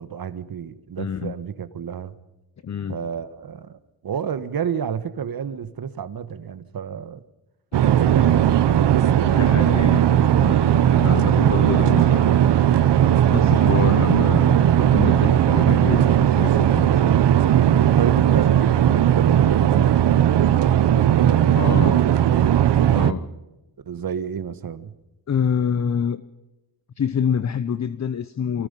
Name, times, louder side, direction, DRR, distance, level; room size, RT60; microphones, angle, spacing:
voice 1, 0.0-2.1 2.9-7.2 7.9-8.6 17.9-20.1 20.7-22.6 23.8-24.9, right 7 dB, 55° right, 1.5 m, -31 dB
voice 2, 1.0-1.3 2.6-3.0 9.2-12.4 13.3-17.2 21.5-22.0 22.9-23.3 25.3-26.2 27.0-28.7, left 7 dB, 40° left, 0.8 m, -27 dB
sound 1, 7.7-23.1, right 10 dB, 75° right, 1.1 m, -17 dB
24.5 x 19.5 x 5.5 m
cardioid pair, 90°, 42 cm